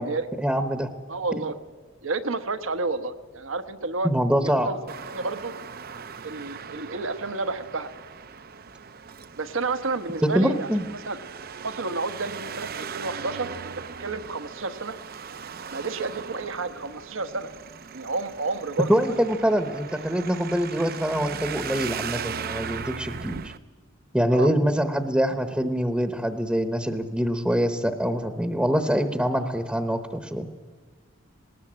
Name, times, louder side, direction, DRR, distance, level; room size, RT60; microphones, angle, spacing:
voice 1, 0.4-0.9 4.0-4.7 10.2-10.8 18.9-23.5 24.1-30.5, equal, 5° right, 9 dB, 0.9 m, -24 dB
voice 2, 1.1-1.5 2.0-4.1 4.4-4.8 5.1-5.5 6.2-7.9 9.4-10.7 11.1-11.2 11.6-13.7 14.0-14.9 15.7-17.5 17.9-19.2 24.3-24.5, right 3 dB, 80° right, 11 dB, 1.3 m, -30 dB
Traffic noise roadway noise, 4.9-23.6, right 6 dB, 45° right, 0.6 m, -38 dB
19.5 x 19.0 x 8.7 m, 1.5 s
head